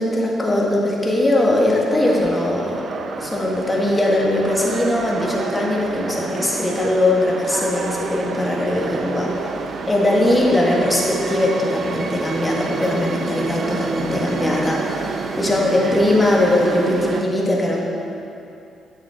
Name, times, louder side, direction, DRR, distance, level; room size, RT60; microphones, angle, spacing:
voice 1, 0.0-2.8 3.2-9.5 9.9-17.8, left 1 dB, 15° left, -3 dB, 1.7 m, -20 dB
sound 1, 2.0-17.2, right 4 dB, 55° right, 0.6 m, -29 dB
9.7 x 7.3 x 3.7 m, 2.7 s
cardioid pair, 90°, 0 cm